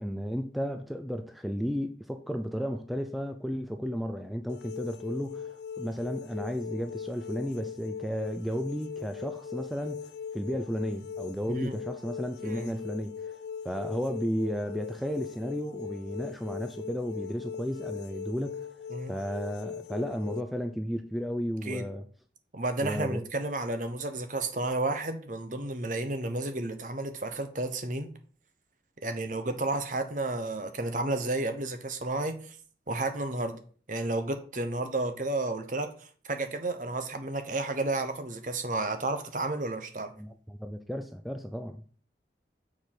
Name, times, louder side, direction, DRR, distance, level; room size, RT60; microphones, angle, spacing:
voice 1, 0.0-13.4 13.6-18.7 19.1-22.0 22.8-23.2 40.2-41.8, equal, ahead, 0.4 m, -33 dB
sound 1, 4.5-20.4, left 7 dB, 65° left, 0.4 m, -40 dB
voice 2, 22.5-28.1 29.0-32.6 32.9-33.6 33.9-40.1, right 2 dB, 45° right, 1.0 m, -32 dB
6.8 x 4.9 x 5.6 m
head